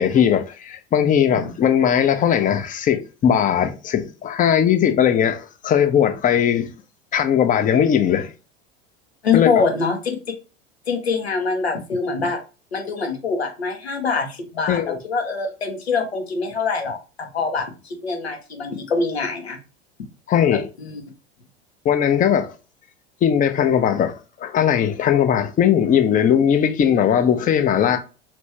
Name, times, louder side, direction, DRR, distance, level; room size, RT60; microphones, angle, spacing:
voice 1, 0.0-6.7 7.1-8.3 9.3-9.6 14.7-15.0 20.3-20.7 21.8-22.5 23.2-28.0, left 9 dB, 25° left, 0.6 m, -19 dB
voice 2, 9.2-10.0 10.9-12.4 12.7-19.6 20.5-21.0, left 4 dB, 90° left, 0.9 m, -24 dB
2.9 x 2.6 x 3.2 m
hypercardioid pair, 80°, 31 cm